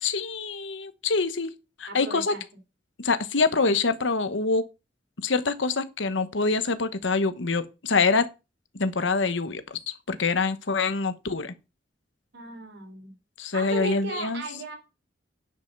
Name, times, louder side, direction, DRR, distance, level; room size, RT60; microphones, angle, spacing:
voice 1, 0.0-1.5 1.8-2.3 3.0-4.6 5.2-8.3 8.7-9.6 10.1-11.5 13.4-14.4, left 4 dB, 75° left, 1.1 m, -25 dB
voice 2, 1.9-2.4 12.3-13.1 13.5-14.8, right 2 dB, 60° right, 2.7 m, -36 dB
10.0 x 5.5 x 6.6 m
head